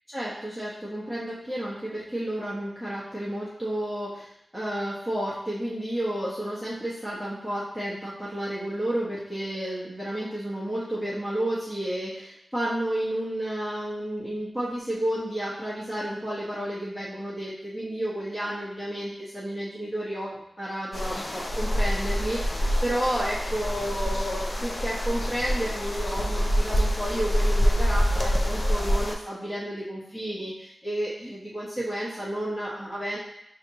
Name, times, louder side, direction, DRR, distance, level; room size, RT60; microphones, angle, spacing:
voice 1, 0.1-33.2, right 1 dB, ahead, -9 dB, 1.1 m, -31 dB
sound 1, 20.9-29.2, equal, 35° left, 0.5 m, -26 dB
4.9 x 2.9 x 2.8 m, 0.79 s
wide cardioid pair, 80°, 0 cm